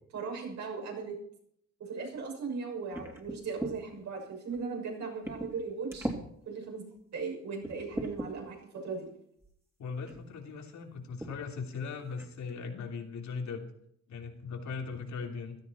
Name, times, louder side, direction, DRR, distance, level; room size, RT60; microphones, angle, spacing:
voice 1, 0.1-1.2 1.8-6.1 6.5-6.8 7.1-9.1, right 4 dB, 65° right, 0 dB, 6.6 m, -38 dB
sound 1, 2.9-3.8 4.5-4.6 5.2-5.6 5.9-6.2 6.9-7.0 7.6-8.3 9.4-9.5 10.0-10.3 11.2-11.4 11.7-11.8 12.2-12.5, right 1 dB, 10° right, 3.1 m, -38 dB
voice 2, 9.8-13.6 14.1-15.6, left 5 dB, 70° left, 3 dB, 3.2 m, -39 dB
16.5 x 13.0 x 4.5 m, 0.69 s
cardioid pair, 90°, 30 cm